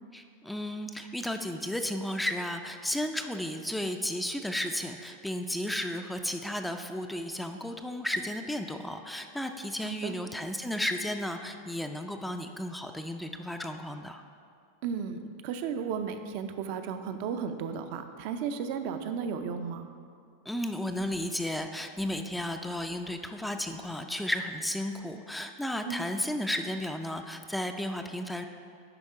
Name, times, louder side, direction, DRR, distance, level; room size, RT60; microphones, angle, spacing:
voice 1, 0.1-14.2 20.5-28.4, left 1 dB, 5° left, 5 dB, 0.4 m, -33 dB
voice 2, 9.8-10.2 14.8-19.9 25.8-26.0, right 6 dB, 60° right, 8 dB, 0.6 m, -34 dB
9.9 x 3.6 x 4.8 m, 2.3 s
hypercardioid pair, 110°, 0 cm